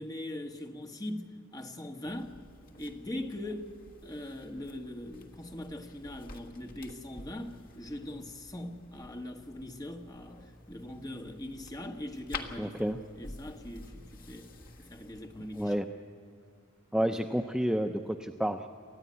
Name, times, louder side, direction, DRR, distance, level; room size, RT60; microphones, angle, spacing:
voice 1, 0.0-2.4 2.8-3.7 4.0-12.7 13.2-14.5 14.8-15.7, left 1 dB, 20° left, 1.5 m, -41 dB
sound 1, 2.0-15.7, left 3 dB, 45° left, 1.6 m, -49 dB
voice 2, 12.6-13.0 15.5-15.8 16.9-18.7, equal, 5° right, 0.6 m, -30 dB
28.0 x 14.0 x 9.7 m
head